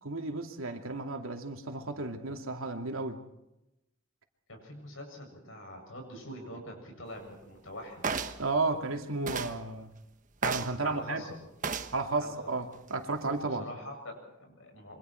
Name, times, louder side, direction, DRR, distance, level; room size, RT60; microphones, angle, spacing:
voice 1, 0.0-3.2 8.4-9.9 10.4-11.2 11.9-13.7, right 3 dB, 85° right, 4 dB, 2.6 m, -33 dB
voice 2, 4.5-8.2 10.8-11.4 12.2-12.4 13.4-15.0, left 1 dB, 75° left, 3 dB, 7.4 m, -44 dB
sound 1, 8.0-8.4 9.3-9.6 10.4-10.8 11.6-12.0 12.7-12.9, right 5 dB, 40° right, 1.1 m, -32 dB
27.0 x 24.5 x 4.6 m, 0.88 s
head